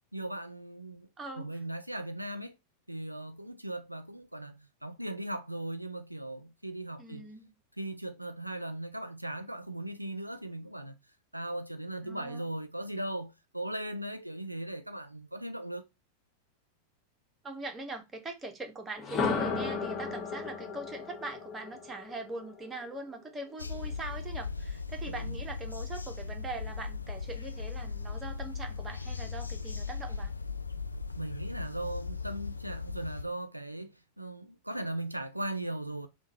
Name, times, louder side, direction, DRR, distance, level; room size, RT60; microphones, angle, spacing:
voice 1, 0.1-1.1 1.4-2.5 2.9-7.3 7.8-11.0 11.3-15.9 25.1-25.4 31.1-36.1, right 1 dB, 90° right, 0.3 m, -38 dB
voice 2, 1.2-1.5 7.0-7.5 12.0-12.5 17.4-30.3, right 2 dB, 15° right, 0.9 m, -42 dB
sound 1, 19.0-22.9, left 4 dB, 25° left, 0.9 m, -34 dB
sound 2, 23.6-33.2, left 4 dB, 80° left, 0.3 m, -38 dB
3.6 x 2.3 x 4.2 m
figure-of-eight pair, 90°, 0 cm